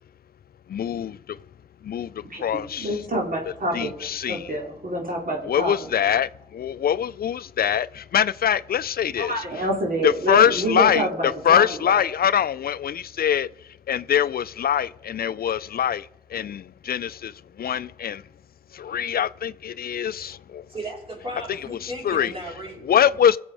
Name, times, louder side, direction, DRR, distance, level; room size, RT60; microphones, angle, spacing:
voice 1, 0.7-1.4 1.8-2.9 3.7-4.5 5.4-9.3 10.0-13.5 13.9-18.2 18.7-20.6 21.5-22.3 22.8-23.4, left 9 dB, 70° left, 0.4 m, -23 dB
voice 2, 2.2-5.7 9.2-12.0, right 1 dB, 65° right, 3.2 m, -27 dB
voice 3, 20.7-23.0, right 1 dB, 35° right, 5.7 m, -35 dB
20.5 x 7.8 x 4.8 m
cardioid pair, 45°, 16 cm